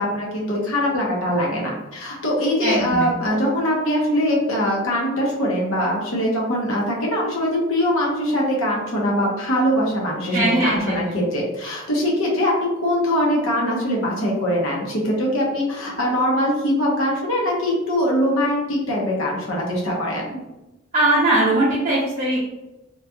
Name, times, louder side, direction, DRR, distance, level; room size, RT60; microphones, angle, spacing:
voice 1, 0.0-12.5 12.8-20.4, equal, 80° left, -3 dB, 0.9 m, -22 dB
voice 2, 2.6-3.1 10.3-11.1 20.9-22.4, right 1 dB, 35° right, -7 dB, 0.5 m, -20 dB
3.1 x 2.7 x 2.2 m, 1.0 s
head